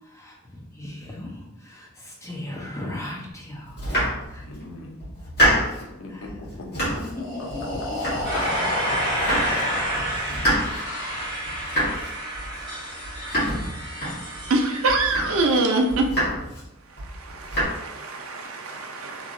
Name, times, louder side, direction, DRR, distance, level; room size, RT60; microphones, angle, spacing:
voice 1, 0.0-3.9 4.3-4.5 6.1-6.6 6.9-8.0 9.1-9.9, left 1 dB, 15° left, -3 dB, 0.5 m, -37 dB
Domestic sounds home sounds, 3.7-4.6 5.0-5.9 6.3-7.2 7.5-8.6 8.9-9.7 9.9-14.5 14.9-15.6 15.9-16.6 17.0-17.6, equal, 45° left, 1.4 m, -27 dB
voice 2, 4.4-4.9 5.8-6.8 8.3-9.4 10.6-11.4, left 3 dB, 65° left, 0 dB, 0.6 m, -39 dB
Breathing, 7.0-10.9, left 1 dB, 85° left, 1.0 m, -31 dB
sound 1, 8.2-16.1, right 1 dB, 25° right, 1.3 m, -31 dB
voice 3, 14.5-16.1 16.9-19.3, right 2 dB, 80° right, 3 dB, 0.5 m, -25 dB
3.0 x 2.7 x 2.5 m, 0.87 s
head